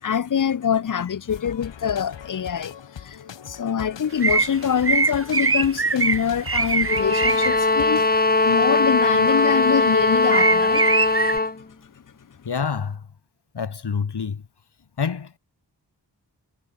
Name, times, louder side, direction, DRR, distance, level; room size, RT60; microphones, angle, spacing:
voice 1, 0.0-10.9 11.6-11.7, left 8 dB, 45° left, 0.8 m, -25 dB
sound 1, 1.3-8.1, left 8 dB, 90° left, 6.5 m, -40 dB
sound 2, 4.2-7.6 9.1-9.9 10.2-11.4, right 4 dB, 30° right, 1.4 m, -22 dB
sound 3, 6.8-11.6, left 3 dB, 20° left, 1.6 m, -20 dB
voice 2, 12.4-13.1 13.5-14.4 15.0-15.4, left 6 dB, 65° left, 4.4 m, -27 dB
cardioid pair, 50°, 43 cm